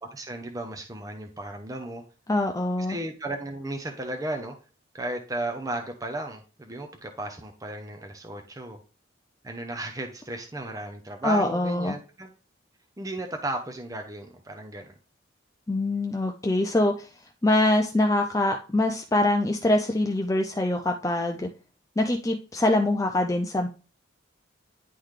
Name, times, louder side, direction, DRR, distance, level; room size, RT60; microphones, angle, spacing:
voice 1, 0.1-2.0 2.8-4.5 4.9-8.8 9.4-12.3 13.0-14.9, right 2 dB, 20° right, 3 dB, 0.7 m, -34 dB
voice 2, 2.3-3.0 11.2-12.0 15.7-17.1 17.4-21.5 22.0-23.7, left 1 dB, 15° left, 4 dB, 0.4 m, -24 dB
10.0 x 3.8 x 3.2 m, 0.37 s
head